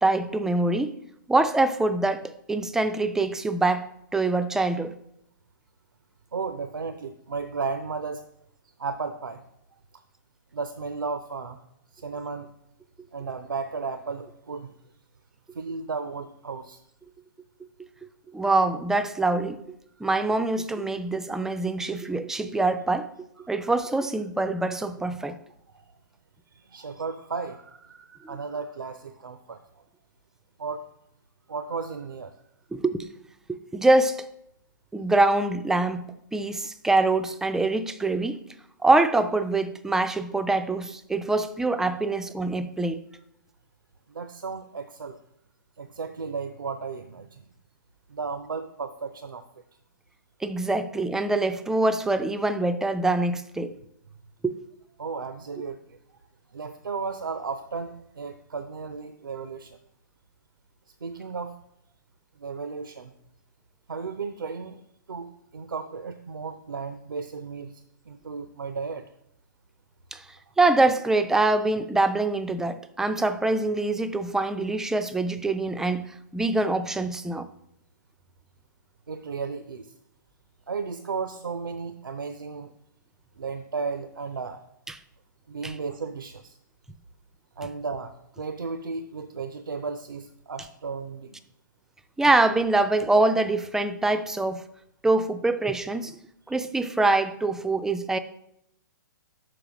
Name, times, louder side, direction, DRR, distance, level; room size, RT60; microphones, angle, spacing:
voice 1, 0.0-1.0 1.3-4.9 18.3-19.6 20.0-23.1 23.5-25.4 32.7-33.1 33.5-34.2 34.9-38.4 38.8-43.0 50.4-53.8 54.4-54.5 70.1-70.2 70.6-76.1 76.3-77.5 84.9-85.0 85.6-85.7 92.2-94.6 95.0-96.2 96.5-98.2, right 2 dB, 5° right, 0.3 m, -24 dB
voice 2, 6.3-8.3 8.8-9.4 9.9-10.0 10.5-11.6 11.9-12.5 13.1-14.7 15.5-16.8 23.4-23.5 25.3-25.4 25.7-25.9 26.5-29.6 30.6-30.8 31.5-32.3 44.1-45.2 45.8-47.5 48.1-49.4 55.0-56.0 56.5-59.8 61.0-61.5 62.4-63.1 63.9-64.8 65.1-69.0 79.1-79.9 80.7-82.7 83.4-84.6 85.5-86.6 87.6-91.4, right 4 dB, 85° right, 0.5 m, -34 dB
5.9 x 4.7 x 6.0 m
hypercardioid pair, 125°, 11 cm